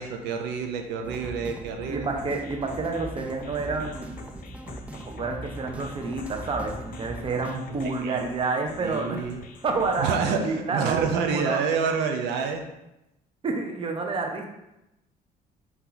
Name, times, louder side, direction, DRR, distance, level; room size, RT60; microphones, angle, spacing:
voice 1, 0.0-2.1 7.8-8.2 8.8-9.4 10.0-12.6, right 5 dB, 85° right, 4 dB, 0.6 m, -28 dB
bomm boom, 1.0-7.6, right 1 dB, 10° right, 0.3 m, -40 dB
voice 2, 1.9-4.2 4.9-9.3 9.6-10.2 10.4-11.6 11.9-12.0 13.4-14.5, right 3 dB, 30° right, 3 dB, 0.7 m, -29 dB
sound 1, 2.2-10.2, left 4 dB, 55° left, 0.6 m, -46 dB
4.6 x 2.7 x 3.8 m, 0.90 s
cardioid pair, 110°, 17 cm